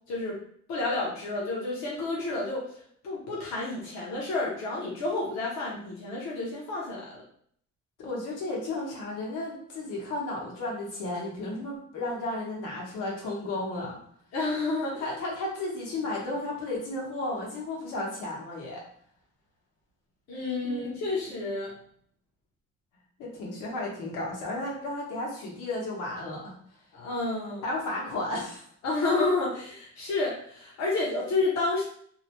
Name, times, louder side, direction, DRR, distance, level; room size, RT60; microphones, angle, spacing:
voice 1, 0.1-0.4 0.7-2.7 3.0-7.2 14.3-15.1 20.3-21.7 26.9-27.6 28.8-31.8, left 3 dB, 60° left, -4 dB, 0.7 m, -30 dB
voice 2, 8.0-14.0 15.0-18.8 20.6-20.8 23.2-26.5 27.6-28.6, left 2 dB, 85° left, -3 dB, 1.1 m, -33 dB
2.7 x 2.1 x 2.9 m, 0.63 s
cardioid pair, 180°, 30 cm